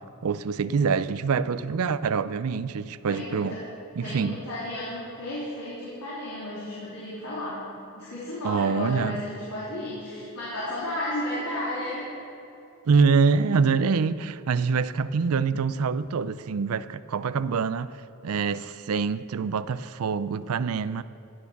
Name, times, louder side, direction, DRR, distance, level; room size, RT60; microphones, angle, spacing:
voice 1, 0.2-3.6 4.0-4.4 8.4-9.2 12.9-17.9 18.2-21.0, right 5 dB, 80° right, 0.4 m, -25 dB
voice 2, 3.1-3.6 4.0-7.7 7.9-12.1 14.6-14.7, left 1 dB, 85° left, 3.6 m, -33 dB
16.5 x 9.5 x 5.9 m
head